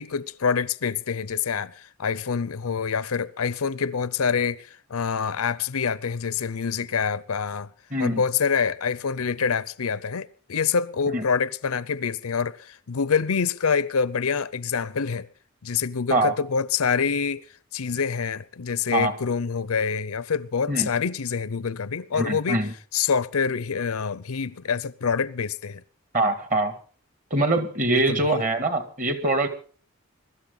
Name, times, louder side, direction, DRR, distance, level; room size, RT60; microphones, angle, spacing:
voice 1, 0.0-7.7 8.0-15.3 15.6-17.5 17.7-22.6 22.9-25.8 27.9-28.3, left 6 dB, 85° left, 0.6 m, -26 dB
voice 2, 7.9-8.2 11.1-11.2 16.1-16.3 18.9-19.1 20.7-20.9 22.1-22.7 26.1-26.7 27.3-29.5, right 2 dB, 35° right, 1.9 m, -23 dB
22.0 x 12.5 x 4.0 m
head